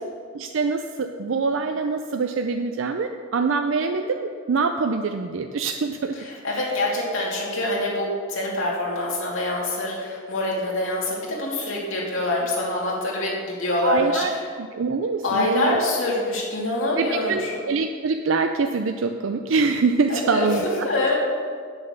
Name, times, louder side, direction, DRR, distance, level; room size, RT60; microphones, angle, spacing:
voice 1, 0.3-6.2 6.5-6.9 13.8-14.3 14.6-15.8 17.0-20.6, right 4 dB, 80° right, 6 dB, 0.5 m, -24 dB
voice 2, 6.2-14.4 15.2-17.6 20.1-20.6 20.8-21.1, left 2 dB, 85° left, -4 dB, 2.8 m, -25 dB
8.8 x 7.1 x 6.7 m, 2.1 s
head